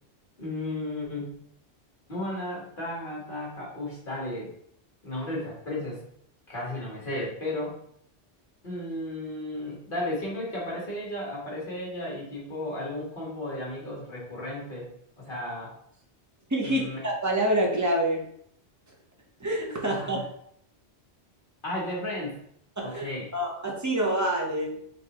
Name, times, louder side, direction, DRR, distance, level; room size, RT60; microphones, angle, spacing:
voice 1, 0.4-1.3 2.1-4.5 5.0-6.0 6.5-7.8 8.6-14.9 15.2-15.7 16.6-17.1 19.8-20.2 21.6-22.4 22.8-23.3, left 1 dB, 50° left, -4 dB, 1.5 m, -34 dB
voice 2, 16.5-18.2 19.4-20.2 22.8-24.8, right 1 dB, 20° right, -1 dB, 0.8 m, -27 dB
4.6 x 3.6 x 2.9 m, 0.70 s
omnidirectional pair, 1.2 m